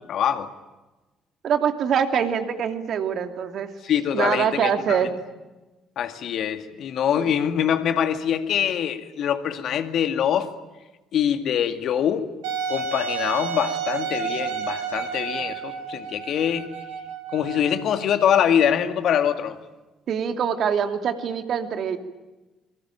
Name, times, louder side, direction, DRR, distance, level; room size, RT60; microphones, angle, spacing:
voice 1, 0.1-0.5 3.8-5.0 6.0-10.5 11.1-12.3 12.7-16.7 17.3-19.6, left 9 dB, 60° left, 2.2 m, -24 dB
voice 2, 1.4-3.7 4.1-5.1 7.2-7.3 20.1-22.0, right 7 dB, 60° right, 2.8 m, -24 dB
Wind instrument woodwind instrument, 12.4-18.1, right 7 dB, 80° right, 2.6 m, -31 dB
27.0 x 23.5 x 9.0 m
hypercardioid pair, 50°, 0 cm